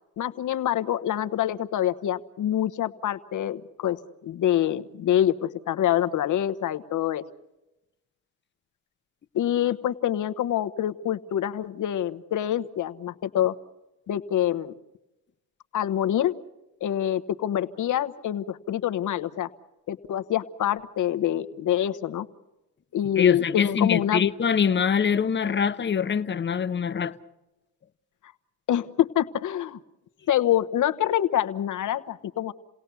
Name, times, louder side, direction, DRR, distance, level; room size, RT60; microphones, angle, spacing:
voice 1, 0.2-4.0 4.2-7.2 9.3-13.5 14.1-14.7 15.7-16.3 16.8-19.5 19.9-22.3 22.9-24.3 28.7-29.8 30.3-32.5, left 11 dB, 45° left, 1.1 m, -26 dB
voice 2, 23.2-27.1, left 6 dB, 25° left, 0.9 m, -24 dB
29.0 x 17.5 x 6.9 m
supercardioid pair, 75°, 42 cm